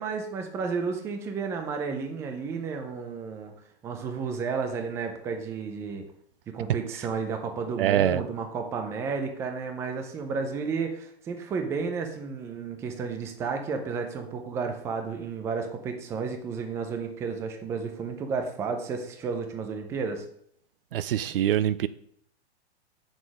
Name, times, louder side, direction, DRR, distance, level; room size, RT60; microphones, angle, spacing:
voice 1, 0.0-3.5 3.8-6.0 6.5-20.2, right 5 dB, 10° right, 0.5 m, -32 dB
voice 2, 7.8-8.2 20.9-21.9, right 11 dB, 60° right, 0.5 m, -24 dB
7.3 x 6.4 x 4.8 m
hypercardioid pair, 150°, 32 cm